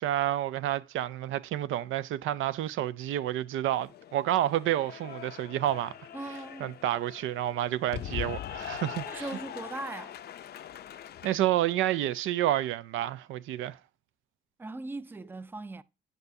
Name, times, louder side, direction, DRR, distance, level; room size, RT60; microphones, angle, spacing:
voice 1, 0.0-5.9 6.6-9.3 11.2-13.8, right 13 dB, 80° right, 0.5 m, -29 dB
Cheering / Applause, 3.6-11.4, left 10 dB, 55° left, 0.5 m, -42 dB
voice 2, 6.1-6.7 9.1-10.2 14.6-15.8, right 2 dB, 10° right, 0.4 m, -39 dB
9.2 x 5.5 x 2.6 m
cardioid pair, 90°, 20 cm